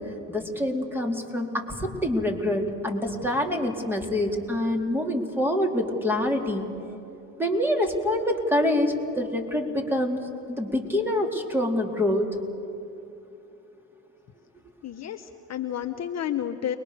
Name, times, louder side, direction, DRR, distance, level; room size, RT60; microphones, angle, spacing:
voice 1, 0.3-6.7 7.4-10.2 10.5-12.3, left 1 dB, 5° right, 2 dB, 4.1 m, -26 dB
voice 2, 14.8-16.8, left 10 dB, 45° left, 7 dB, 1.2 m, -31 dB
30.0 x 22.0 x 6.9 m, 2.8 s
hypercardioid pair, 80°, 38 cm